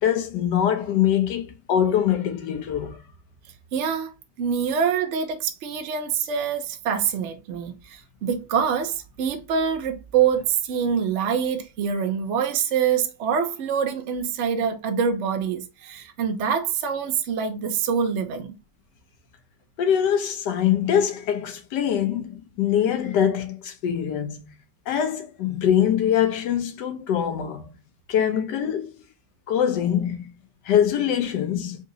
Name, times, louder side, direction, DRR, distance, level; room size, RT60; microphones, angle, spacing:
voice 1, 0.0-3.0 19.8-24.5 24.9-27.7 28.1-28.9 29.5-30.3 30.6-31.8, left 9 dB, 75° left, 1.3 m, -23 dB
voice 2, 3.7-4.1 4.4-18.5, right 7 dB, 60° right, 0.8 m, -25 dB
3.7 x 2.9 x 3.8 m
omnidirectional pair, 1.9 m